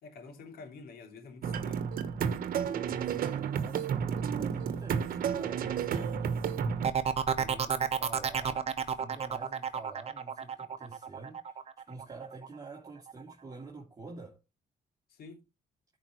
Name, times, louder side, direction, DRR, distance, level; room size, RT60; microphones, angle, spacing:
voice 1, 0.0-2.0 15.1-15.4, left 4 dB, 80° left, 2.9 m, -49 dB
sound 1, 1.4-6.9, right 7 dB, 70° right, 1.1 m, -31 dB
voice 2, 2.9-6.8 7.3-14.4, right 3 dB, 25° right, 2.5 m, -47 dB
sound 2, 6.8-12.5 12.9-13.3, right 7 dB, 40° right, 1.1 m, -31 dB
14.0 x 5.1 x 3.1 m
cardioid pair, 105°, 15 cm